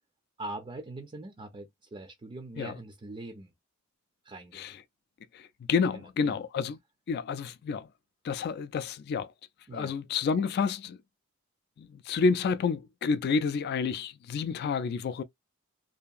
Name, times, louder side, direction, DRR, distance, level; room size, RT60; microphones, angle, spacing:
voice 1, 0.4-3.5 4.2-4.7 5.9-6.4 9.7-9.9, right 2 dB, 25° right, 0.4 m, -42 dB
voice 2, 5.3-6.8 7.1-7.9 8.2-9.3 9.7-11.0 11.8-15.2, left 5 dB, 50° left, 0.3 m, -29 dB
2.8 x 2.5 x 2.3 m
head